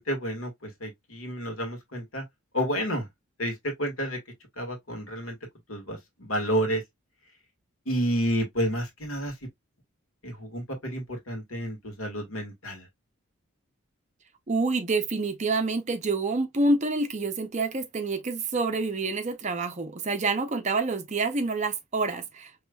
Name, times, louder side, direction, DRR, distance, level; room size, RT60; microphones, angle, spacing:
voice 1, 0.0-2.2 2.5-3.1 3.4-4.2 4.6-5.3 5.7-6.8 7.8-9.3 10.2-12.9, equal, 70° left, 1.6 m, -30 dB
voice 2, 14.5-22.6, right 3 dB, 35° right, 0.5 m, -27 dB
4.9 x 3.0 x 2.2 m
head